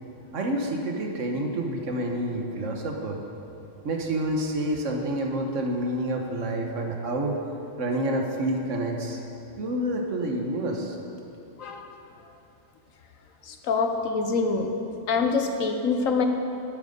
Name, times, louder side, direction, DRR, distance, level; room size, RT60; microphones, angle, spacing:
voice 1, 0.3-3.2 3.8-7.4 7.8-9.2 9.6-11.0, right 1 dB, 70° right, 2 dB, 1.5 m, -28 dB
voice 2, 11.6-11.9 13.5-14.7 15.1-16.3, left 4 dB, 85° left, 5 dB, 1.3 m, -25 dB
12.0 x 9.2 x 5.3 m, 2.8 s
omnidirectional pair, 1.3 m